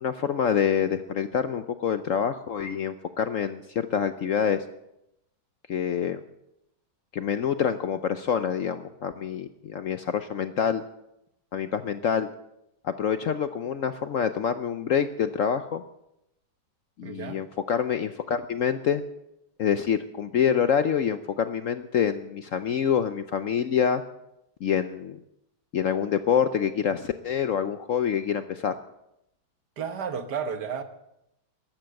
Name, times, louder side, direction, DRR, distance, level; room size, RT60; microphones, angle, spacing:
voice 1, 0.0-4.6 5.7-6.2 7.1-10.8 11.5-12.3 12.8-15.8 17.0-19.0 19.6-24.0 24.6-25.2 25.7-28.7, left 8 dB, 65° left, 10 dB, 0.8 m, -26 dB
voice 2, 17.0-17.4 29.8-30.8, right 6 dB, 65° right, 9 dB, 1.8 m, -32 dB
14.0 x 11.5 x 7.7 m, 0.84 s
omnidirectional pair, 1.9 m